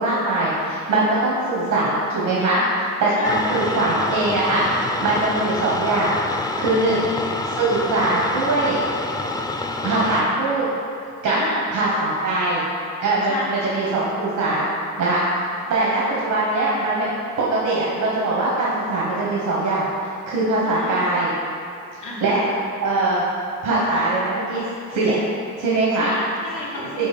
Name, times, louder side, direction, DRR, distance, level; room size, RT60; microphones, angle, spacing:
voice 1, 0.0-2.6 3.0-4.6 5.0-6.2 6.6-7.1 7.5-8.8 9.8-10.7 11.2-11.4 11.7-12.6 13.0-14.7 15.0-15.2 15.7-17.1 17.4-19.9 20.3-21.3 22.2-22.4 22.8-23.2 23.6-24.6 24.9-25.3 25.6-26.1 27.0-27.1, right 2 dB, 90° right, -7 dB, 1.3 m, -21 dB
voice 2, 2.4-2.8 3.2-3.9 6.7-7.1 11.2-12.4 13.2-14.0 16.0-16.5 20.6-21.1 22.0-22.6 25.9-27.1, left 2 dB, 85° left, -4 dB, 1.3 m, -32 dB
sound 1, 3.2-10.2, left 2 dB, 15° left, 0.4 m, -27 dB
5.2 x 4.0 x 5.2 m, 2.4 s
cardioid pair, 90°, 30 cm